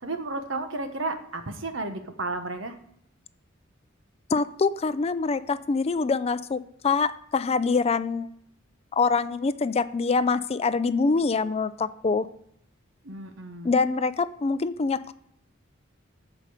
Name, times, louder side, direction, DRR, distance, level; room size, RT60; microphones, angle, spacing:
voice 1, 0.0-2.8 13.0-13.8, right 2 dB, 75° right, 7 dB, 1.3 m, -33 dB
voice 2, 4.3-8.3 8.9-12.3 13.6-15.1, left 4 dB, 30° left, 14 dB, 0.4 m, -25 dB
14.0 x 5.2 x 5.0 m, 0.71 s
head